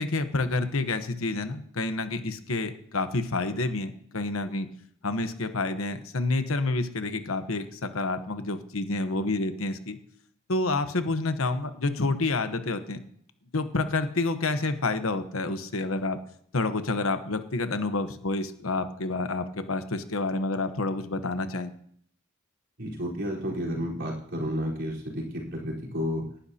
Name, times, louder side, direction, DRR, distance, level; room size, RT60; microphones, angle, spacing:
voice 1, 0.0-4.7 5.0-10.0 10.5-13.0 13.5-16.2 16.5-21.7, left 2 dB, 75° left, 9 dB, 1.0 m, -28 dB
voice 2, 22.8-25.2 25.5-26.2, equal, 55° right, -4 dB, 4.2 m, -31 dB
18.5 x 11.5 x 2.9 m, 0.65 s
head